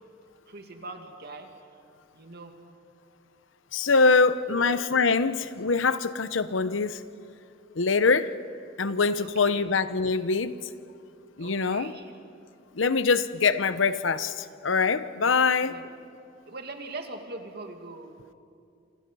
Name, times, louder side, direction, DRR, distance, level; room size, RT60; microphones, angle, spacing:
voice 1, 0.5-1.5 2.1-2.5 4.5-4.7 9.2-9.6 11.4-12.1 15.3-15.4 15.7-15.9 16.5-18.1, right 3 dB, 55° right, 4 dB, 2.3 m, -41 dB
voice 2, 3.7-7.0 7.8-8.3 8.8-10.6 11.4-11.9 12.7-15.8, left 4 dB, 85° left, 13 dB, 0.8 m, -24 dB
28.5 x 26.0 x 5.5 m, 2.5 s
head